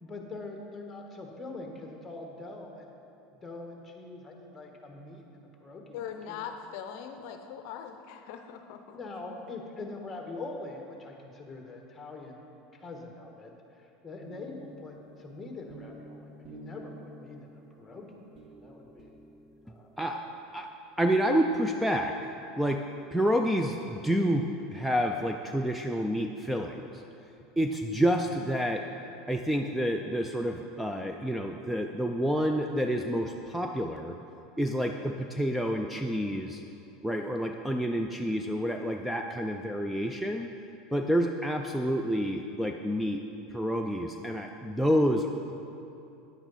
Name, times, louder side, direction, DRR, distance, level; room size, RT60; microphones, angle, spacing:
voice 1, 0.0-3.0 3.4-6.4 8.9-12.4 12.7-13.5 13.8-18.1 18.4-19.1 19.6-20.3, left 3 dB, 15° left, 2 dB, 1.5 m, -43 dB
voice 2, 5.9-9.2, left 8 dB, 65° left, 6 dB, 0.6 m, -41 dB
sound 1, 14.2-20.3, right 2 dB, 35° right, 1.2 m, -50 dB
voice 3, 21.0-22.2 22.6-22.8 23.1-27.0 27.6-28.9 29.3-34.2 34.6-36.6 37.0-40.5 40.9-43.2 43.5-45.3, equal, ahead, 4 dB, 0.4 m, -28 dB
10.0 x 8.7 x 4.1 m, 2.7 s
supercardioid pair, 115°, 0 cm